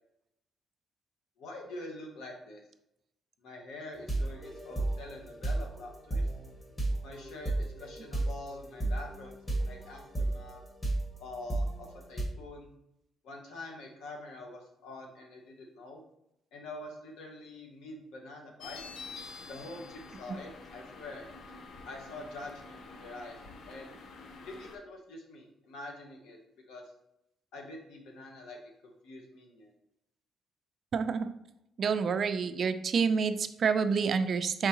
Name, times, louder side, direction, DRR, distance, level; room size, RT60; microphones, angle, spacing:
voice 1, 1.4-2.6 3.4-6.3 7.0-9.3 9.6-10.6 11.2-12.7 13.2-16.0 16.5-18.8 19.5-21.3 21.8-23.4 23.7-23.9 24.4-26.4 26.7-26.9 27.5-29.7, left 2 dB, 85° left, 2 dB, 1.0 m, -45 dB
sound 1, 3.9-12.2, right 2 dB, 20° left, 1.2 m, -34 dB
sound 2, 18.6-24.8, left 4 dB, 70° left, 0.6 m, -47 dB
voice 2, 30.9-31.3 31.8-34.7, right 5 dB, 55° right, 10 dB, 0.3 m, -28 dB
4.6 x 3.6 x 2.8 m, 0.81 s
cardioid pair, 90°, 0 cm